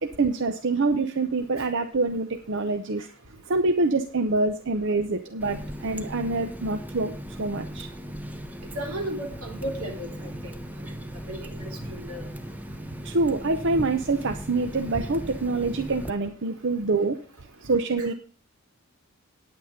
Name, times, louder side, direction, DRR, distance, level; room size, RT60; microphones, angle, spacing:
voice 1, 0.0-3.1 3.5-7.9 13.0-17.2 17.6-18.1, right 3 dB, 60° right, 7 dB, 0.8 m, -26 dB
Water tap faucet, 5.4-16.1, equal, 10° right, 0.7 m, -38 dB
voice 2, 8.7-10.5 11.3-12.2 18.0-18.1, right 1 dB, 85° right, 3 dB, 3.1 m, -35 dB
9.5 x 9.1 x 5.1 m, 0.39 s
head